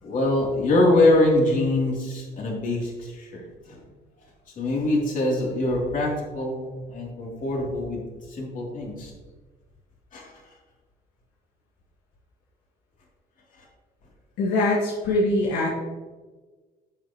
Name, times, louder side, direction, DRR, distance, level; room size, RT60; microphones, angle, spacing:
voice 1, 0.0-3.8 4.6-9.1 10.1-10.3, left 2 dB, 50° left, -2 dB, 3.1 m, -24 dB
voice 2, 14.4-15.7, left 2 dB, 85° left, -3 dB, 1.8 m, -23 dB
11.0 x 7.9 x 3.0 m, 1.3 s
cardioid pair, 110°, 17 cm